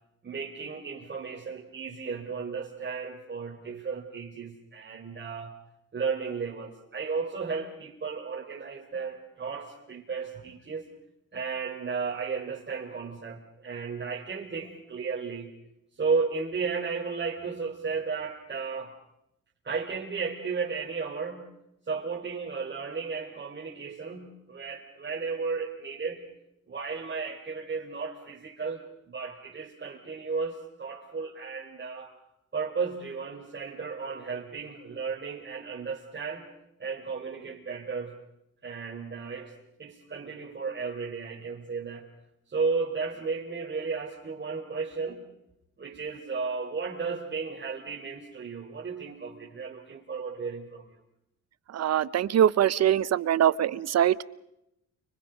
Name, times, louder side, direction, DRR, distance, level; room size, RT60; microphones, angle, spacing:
voice 1, 0.2-5.5 5.9-10.8 11.3-15.5 16.0-19.0 19.6-21.5 21.9-26.2 26.7-32.1 32.5-36.5 36.8-38.1 38.6-42.1 42.5-45.2 45.8-50.9, right 5 dB, 35° right, -4 dB, 4.1 m, -34 dB
voice 2, 51.7-54.2, right 10 dB, 60° right, 19 dB, 0.9 m, -23 dB
30.0 x 25.0 x 5.2 m, 0.83 s
cardioid pair, 90°, 30 cm